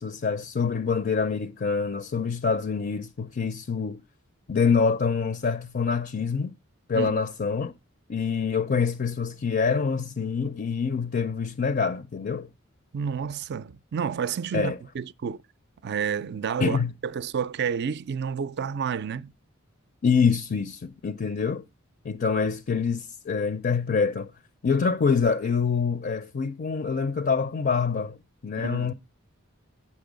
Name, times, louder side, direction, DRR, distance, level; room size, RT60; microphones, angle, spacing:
voice 1, 0.0-4.0 4.5-6.5 6.9-7.7 8.1-12.5 14.5-14.8 16.6-16.9 20.0-21.6 22.0-24.3 24.6-28.2 28.4-28.9, left 5 dB, 45° left, 0.5 m, -25 dB
voice 2, 12.9-15.4 15.8-19.3 28.6-28.9, right 7 dB, 55° right, 0.4 m, -30 dB
8.5 x 6.1 x 5.0 m
head